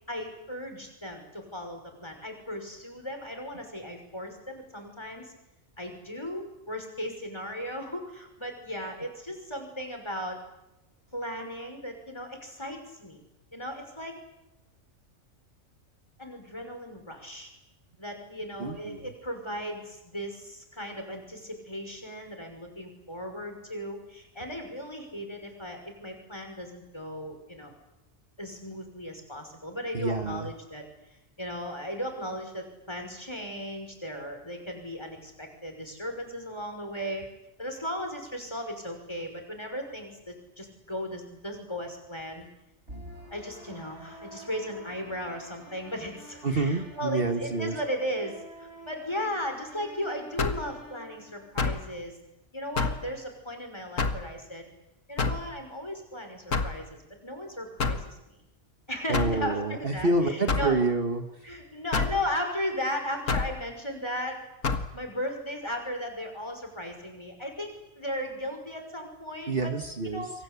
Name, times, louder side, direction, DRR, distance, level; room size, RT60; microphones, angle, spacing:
voice 1, 0.1-5.3 5.8-10.4 11.1-13.2 13.5-14.1 16.2-17.5 18.0-27.7 28.4-30.8 31.4-37.3 37.6-42.5 43.3-52.2 52.5-54.6 55.1-58.4 58.9-60.8 61.4-64.4 64.9-69.7 70.0-70.3, equal, 20° left, 4 dB, 6.0 m, -36 dB
voice 2, 18.6-19.1 29.9-30.5 46.4-47.8 59.1-61.5 69.5-70.3, right 3 dB, 50° right, 6 dB, 1.7 m, -28 dB
sound 1, 42.9-51.9, equal, 65° right, 6.3 m, -48 dB
sound 2, 50.4-50.7 51.6-51.9 52.8-53.1 54.0-54.3 55.2-55.5 56.5-56.8 57.8-58.1 59.1-59.4 60.5-60.7 61.9-62.2 63.3-63.5 64.6-64.9, left 4 dB, 85° left, 2.1 m, -27 dB
28.0 x 23.5 x 8.4 m, 0.91 s
omnidirectional pair, 1.3 m